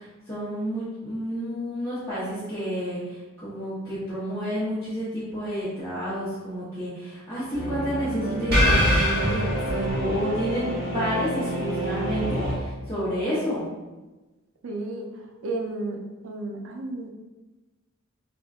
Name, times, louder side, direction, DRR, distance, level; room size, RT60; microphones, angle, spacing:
voice 1, 0.0-13.6, equal, 15° left, -13 dB, 0.9 m, -30 dB
sound 1, 7.5-12.5, equal, 50° right, 1.2 m, -25 dB
voice 2, 14.6-16.0 16.2-17.1, right 2 dB, 70° right, 2 dB, 0.5 m, -33 dB
3.5 x 2.6 x 2.4 m, 1.2 s
head